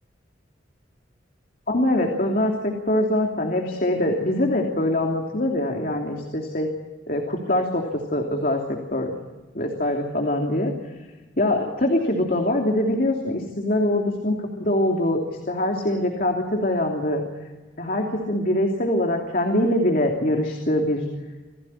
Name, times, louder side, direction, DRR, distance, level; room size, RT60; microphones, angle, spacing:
voice 1, 1.7-6.7 7.1-9.1 9.5-10.7 11.4-17.2 17.8-21.0, left 1 dB, 45° left, 2 dB, 3.0 m, -23 dB
27.5 x 18.0 x 9.9 m, 1.2 s
head